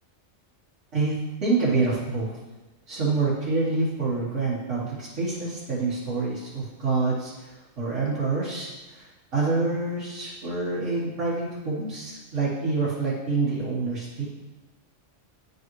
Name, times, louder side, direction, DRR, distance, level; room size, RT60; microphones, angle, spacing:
voice 1, 0.9-2.3 2.9-7.5 7.8-9.1 9.3-14.2, right 3 dB, 85° right, -8 dB, 1.8 m, -27 dB
9.6 x 5.4 x 3.1 m, 1.1 s
omnidirectional pair, 1.2 m